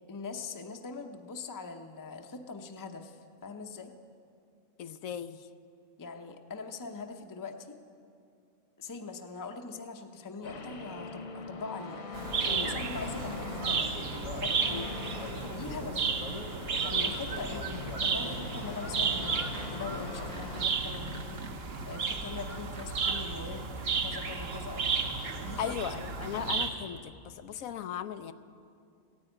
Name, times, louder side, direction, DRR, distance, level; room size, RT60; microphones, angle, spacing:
voice 1, 0.1-3.9 6.0-7.8 8.8-13.9 14.4-14.6 15.5-16.1 16.8-17.7 18.0-23.7 24.0-24.8 25.4-25.6, left 4 dB, 20° left, 5 dB, 0.6 m, -42 dB
voice 2, 4.8-5.5 12.5-12.8 14.7-14.9 15.4-15.7 16.9-17.2 25.6-28.3, left 9 dB, 90° left, 12 dB, 1.1 m, -38 dB
sound 1, 10.4-20.7, left 4 dB, 65° left, 1.5 m, -42 dB
sound 2, 12.1-26.7, right 5 dB, 50° right, 1.1 m, -33 dB
sound 3, 19.4-19.7 20.0-23.4 24.9-26.7, right 4 dB, 70° right, 1.7 m, -49 dB
16.0 x 9.7 x 8.8 m, 2.5 s
omnidirectional pair, 1.4 m